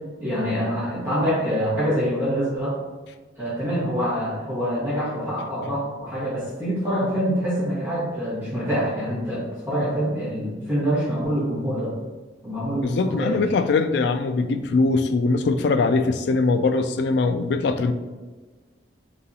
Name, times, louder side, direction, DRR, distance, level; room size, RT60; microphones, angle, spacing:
voice 1, 0.2-2.8 3.4-11.9 12.4-13.4, equal, 10° right, -11 dB, 1.5 m, -25 dB
voice 2, 12.8-17.9, left 3 dB, 60° left, 9 dB, 0.3 m, -21 dB
3.9 x 3.8 x 2.8 m, 1.3 s
head